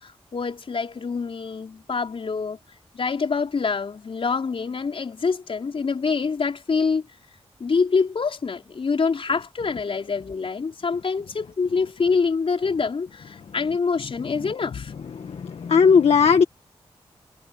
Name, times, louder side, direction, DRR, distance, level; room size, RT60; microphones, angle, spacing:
voice 1, 0.0-2.6 2.9-7.1 7.6-14.9, left 5 dB, 60° left, 4.6 m, -25 dB
voice 2, 15.1-16.4, left 6 dB, 75° left, 1.8 m, -17 dB
cardioid pair, 60°, 10 cm